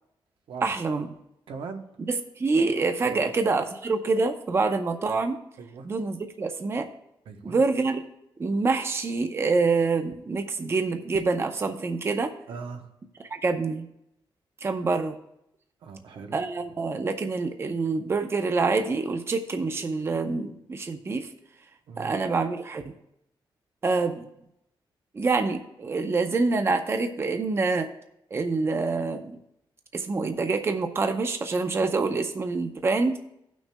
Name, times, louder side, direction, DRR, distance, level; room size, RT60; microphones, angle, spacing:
voice 1, 0.6-1.1 2.1-5.4 5.9-6.9 7.4-8.0 8.4-12.3 13.3-13.9 14.6-15.2 16.3-21.3 22.0-22.8 23.8-24.3 25.1-27.9 28.3-29.4 29.9-33.2, right 3 dB, 30° right, 6 dB, 0.6 m, -26 dB
voice 2, 1.5-1.9 3.0-3.3 5.6-5.9 7.3-7.6 12.5-12.9 15.8-16.4 21.9-22.1, right 5 dB, 90° right, 4 dB, 0.9 m, -39 dB
17.0 x 6.2 x 2.2 m, 0.80 s
wide cardioid pair, 150°, 9 cm